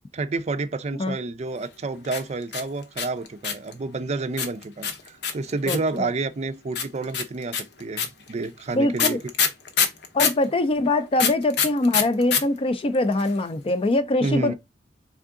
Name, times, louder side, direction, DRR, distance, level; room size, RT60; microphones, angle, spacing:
voice 1, 0.1-9.2 14.2-14.5, right 3 dB, 40° right, 0.4 m, -29 dB
sound 1, 2.0-3.7 4.4-6.0 6.7-10.4 11.2-12.4 12.7-12.8 12.9-13.4, left 6 dB, 65° left, 0.8 m, -24 dB
voice 2, 5.7-6.1 8.7-9.2 10.1-14.5, left 2 dB, 30° left, 0.4 m, -23 dB
3.7 x 3.6 x 3.6 m
head